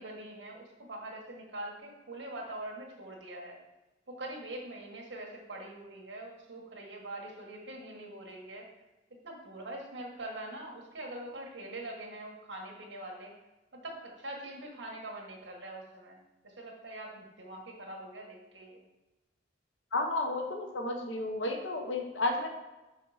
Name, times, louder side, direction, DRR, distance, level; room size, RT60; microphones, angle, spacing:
voice 1, 0.0-3.6 4.1-8.7 9.2-13.3 13.7-16.2 16.4-18.8, right 1 dB, 75° right, -1 dB, 1.5 m, -43 dB
voice 2, 19.9-22.5, left 2 dB, 85° left, 3 dB, 0.9 m, -32 dB
5.9 x 5.7 x 4.9 m, 1.1 s
head